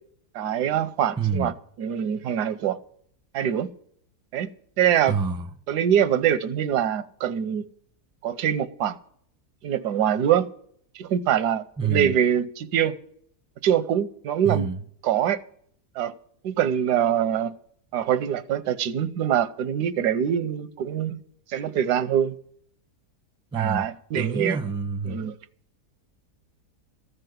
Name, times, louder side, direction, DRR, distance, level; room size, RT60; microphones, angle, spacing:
voice 1, 0.3-1.5 1.8-2.8 3.3-3.7 4.3-4.5 4.8-5.2 5.7-7.6 8.2-9.0 9.6-10.5 10.9-13.0 13.6-14.7 15.0-15.4 16.0-16.1 16.4-17.5 17.9-21.2 21.5-22.4 23.5-24.6 25.0-25.3, right 9 dB, 80° right, 1.3 m, -24 dB
voice 2, 1.2-1.5 5.1-5.5 11.8-12.2 14.4-14.8 23.5-23.9 24.1-25.3, right 5 dB, 5° right, 0.6 m, -27 dB
14.0 x 6.8 x 9.2 m
omnidirectional pair, 1.7 m